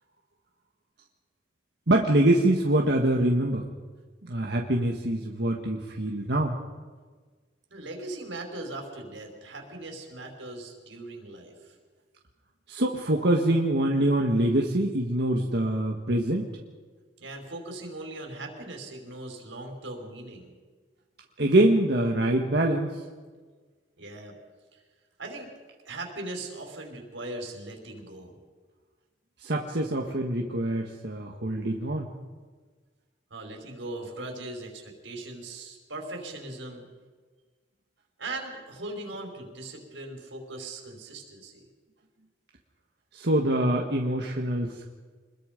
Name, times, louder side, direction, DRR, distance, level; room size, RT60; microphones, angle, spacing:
voice 1, 1.9-3.7 4.2-6.6 12.7-16.5 21.4-23.0 29.4-32.1 43.1-45.0, right 1 dB, 60° right, 0 dB, 1.8 m, -24 dB
voice 2, 7.7-11.8 17.2-20.5 24.0-24.3 24.7-24.8 25.2-25.5 25.9-28.4 33.3-36.9 38.2-41.7, right 2 dB, 90° right, 2 dB, 5.1 m, -39 dB
27.0 x 21.5 x 5.3 m, 1.4 s
head